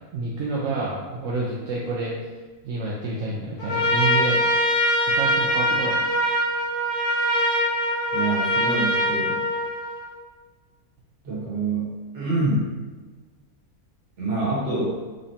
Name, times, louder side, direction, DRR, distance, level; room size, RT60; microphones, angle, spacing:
voice 1, 0.0-2.1 2.6-4.4 5.1-6.1, right 3 dB, 65° right, -4 dB, 0.8 m, -28 dB
Trumpet, 3.6-10.1, equal, 50° left, 1.0 m, -23 dB
voice 2, 8.1-9.5 11.2-11.9 12.1-12.7 14.2-15.0, right 2 dB, 50° right, -6 dB, 1.4 m, -26 dB
3.8 x 3.2 x 2.7 m, 1.3 s
omnidirectional pair, 1.6 m